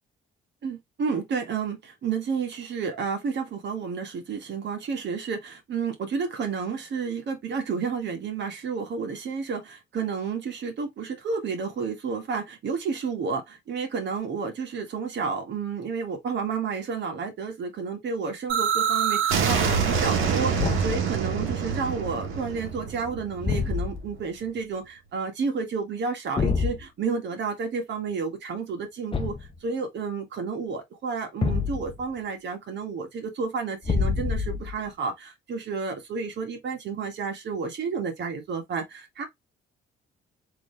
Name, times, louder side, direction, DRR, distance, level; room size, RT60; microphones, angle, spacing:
voice 1, 0.6-29.4 29.6-39.2, right 5 dB, 65° right, 1.6 m, -31 dB
sound 1, 18.5-24.2, right 6 dB, 85° right, 1.2 m, -26 dB
Thump thud, 20.5-21.1 23.4-24.1 26.4-26.8 29.1-29.6 31.4-32.0 33.8-34.8, left 5 dB, 25° left, 0.7 m, -27 dB
3.8 x 3.1 x 3.2 m
cardioid pair, 90°, 20 cm